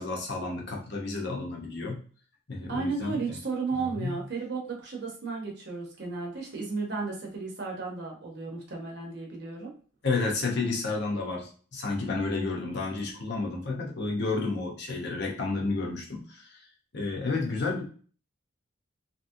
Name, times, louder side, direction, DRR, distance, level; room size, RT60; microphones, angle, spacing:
voice 1, 0.0-2.0 2.5-3.4 3.7-4.1 10.0-16.6 16.9-17.8, left 3 dB, 55° left, -1 dB, 0.8 m, -31 dB
voice 2, 2.7-9.7, right 4 dB, 55° right, 0 dB, 1.0 m, -34 dB
2.9 x 2.9 x 2.6 m, 0.41 s
head